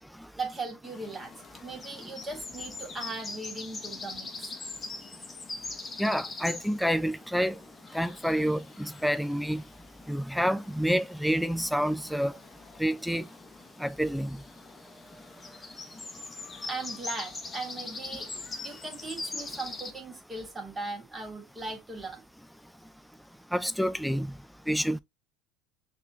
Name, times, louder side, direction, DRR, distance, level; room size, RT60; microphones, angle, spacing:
voice 1, 0.4-1.3 1.6-4.5 16.6-18.3 18.6-22.2, right 3 dB, 20° right, 1.8 m, -38 dB
sound 1, 0.8-19.9, left 3 dB, 20° left, 1.0 m, -42 dB
voice 2, 6.0-7.6 7.9-9.6 10.1-12.3 12.8-13.3 13.8-14.4 23.5-24.4 24.7-25.0, equal, ahead, 0.4 m, -28 dB
5.9 x 2.8 x 2.8 m
hypercardioid pair, 85°, 0 cm